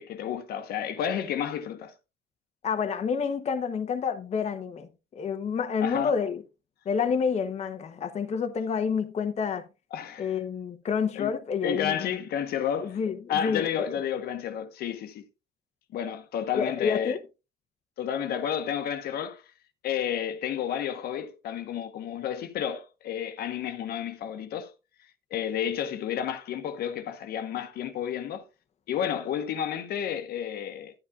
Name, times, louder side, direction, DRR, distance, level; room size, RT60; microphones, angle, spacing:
voice 1, 0.0-1.9 5.8-6.1 9.9-10.3 11.2-11.3 11.6-13.0 13.3-15.3 15.9-17.2 18.0-19.4 19.8-24.7 25.3-28.4 28.9-30.9, left 9 dB, 65° left, 1.1 m, -31 dB
voice 2, 2.6-6.4 6.9-9.6 10.2-12.1 12.8-14.0 16.5-17.2, left 6 dB, 40° left, 0.9 m, -29 dB
11.0 x 9.7 x 2.4 m
cardioid pair, 110°, 17 cm